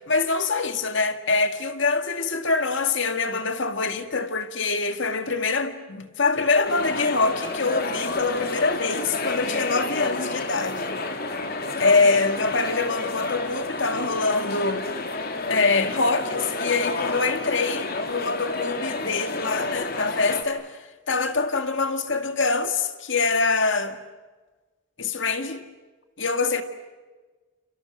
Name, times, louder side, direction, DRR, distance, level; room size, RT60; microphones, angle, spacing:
voice 1, 0.1-11.0 11.8-14.8 15.5-20.8 21.1-24.0 25.0-25.6 26.2-26.6, left 3 dB, 65° left, 2.1 m, -24 dB
sound 1, 6.6-20.4, left 3 dB, 45° left, 2.9 m, -30 dB
30.0 x 29.5 x 6.4 m
head